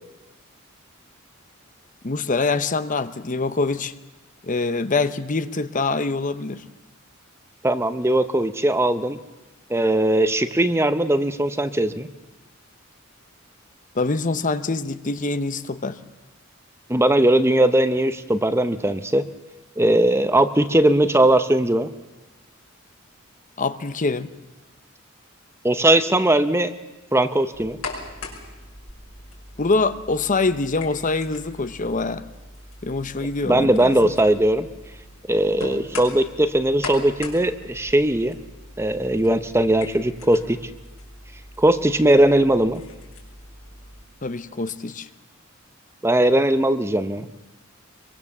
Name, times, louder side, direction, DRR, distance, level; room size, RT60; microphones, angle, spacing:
voice 1, 2.0-3.9 4.4-6.6 13.9-16.0 23.6-24.3 29.6-32.2 32.8-34.1 44.2-45.1, left 3 dB, 40° left, 12 dB, 0.9 m, -24 dB
voice 2, 7.6-9.2 9.7-12.1 16.9-19.3 19.8-21.9 25.6-26.7 27.1-27.8 33.4-34.7 35.3-38.4 38.8-40.6 41.6-42.8 46.0-47.3, right 1 dB, 10° right, 10 dB, 0.8 m, -19 dB
sound 1, 27.5-44.0, left 3 dB, 90° left, 6.1 m, -40 dB
24.5 x 23.0 x 7.3 m, 1.1 s
head